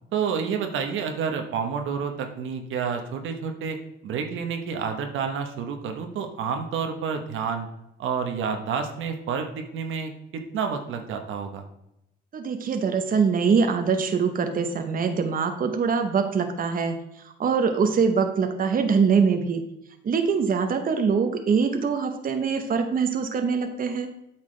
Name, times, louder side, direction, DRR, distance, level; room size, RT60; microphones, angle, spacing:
voice 1, 0.1-3.8 4.0-7.7 8.0-11.6, right 6 dB, 80° right, 5 dB, 1.1 m, -29 dB
voice 2, 12.3-17.0 17.2-19.6 20.0-24.1, right 5 dB, 45° right, 6 dB, 0.9 m, -23 dB
8.5 x 5.9 x 3.3 m, 0.84 s
cardioid pair, 90°, 20 cm